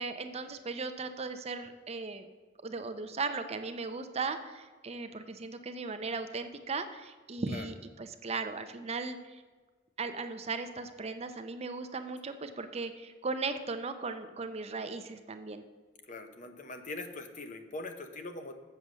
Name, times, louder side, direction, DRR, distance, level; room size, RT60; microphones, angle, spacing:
voice 1, 0.0-2.3 2.6-9.4 10.0-15.6, right 4 dB, 35° right, 8 dB, 0.6 m, -37 dB
voice 2, 16.1-18.6, left 2 dB, 45° left, 6 dB, 0.8 m, -42 dB
7.6 x 6.8 x 6.2 m, 1.4 s
head